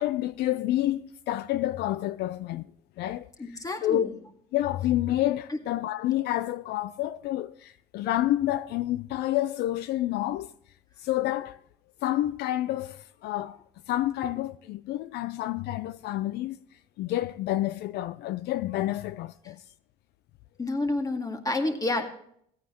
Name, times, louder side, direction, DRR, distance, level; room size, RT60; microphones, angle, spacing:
voice 1, 0.0-2.7 3.0-3.3 3.8-4.1 4.5-10.5 11.0-11.6 12.0-13.6 13.9-16.6 17.0-19.6, left 14 dB, 75° left, 0.4 m, -29 dB
voice 2, 3.4-4.2 5.5-5.6 20.6-22.1, left 2 dB, 20° left, 2.0 m, -29 dB
16.5 x 9.3 x 3.0 m
cardioid pair, 110°, 17 cm